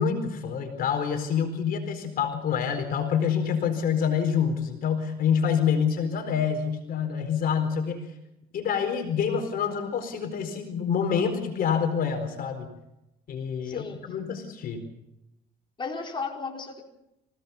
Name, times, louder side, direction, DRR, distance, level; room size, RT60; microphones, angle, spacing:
voice 1, 0.0-8.1 8.5-12.7 13.3-14.8, left 7 dB, 60° left, 6 dB, 4.4 m, -27 dB
voice 2, 13.6-14.0 15.8-16.8, left 4 dB, 30° left, 1 dB, 4.6 m, -34 dB
26.0 x 17.5 x 7.1 m, 0.89 s
cardioid pair, 110°, 17 cm